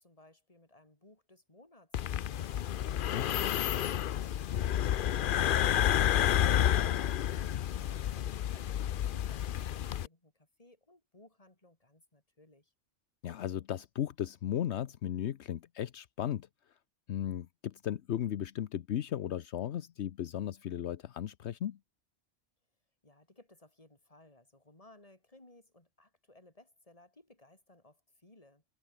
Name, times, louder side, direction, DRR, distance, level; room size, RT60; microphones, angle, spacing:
voice 1, 0.0-5.3 5.9-12.7 23.0-28.6, left 2 dB, 30° left, 3.4 m, -61 dB
sound 1, 1.9-10.1, left 10 dB, 60° left, 0.7 m, -30 dB
voice 2, 13.2-16.5 17.1-21.8, left 10 dB, 75° left, 1.0 m, -36 dB
omnidirectional pair, 1.2 m